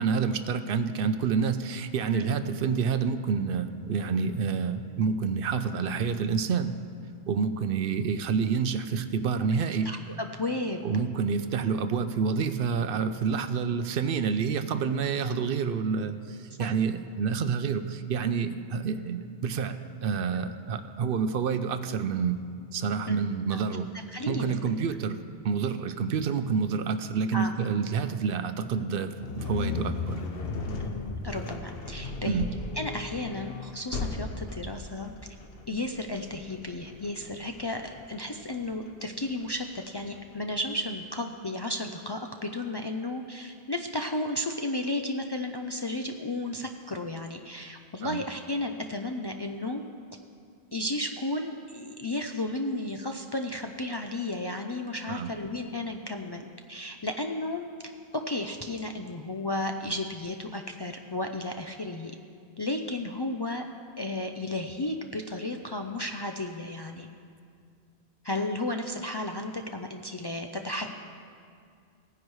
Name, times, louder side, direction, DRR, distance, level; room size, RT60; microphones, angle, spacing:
voice 1, 0.0-6.8 7.3-9.9 10.8-22.4 22.7-23.9 24.3-25.2 25.4-30.2 32.3-32.5 48.0-48.2 55.1-55.3, right 6 dB, 65° right, 10 dB, 0.7 m, -28 dB
voice 2, 9.8-10.8 16.6-16.7 23.1-23.2 23.5-23.6 24.1-24.5 27.3-27.5 30.8-32.4 32.8-35.1 35.7-39.7 39.9-49.8 50.7-56.4 56.7-57.7 58.1-62.1 62.6-63.6 64.0-67.1 68.2-70.9, left 2 dB, 40° left, 3 dB, 0.3 m, -33 dB
sound 1, 29.2-40.3, left 4 dB, 70° left, 1.0 m, -37 dB
17.0 x 9.8 x 3.1 m, 2.3 s
omnidirectional pair, 1.0 m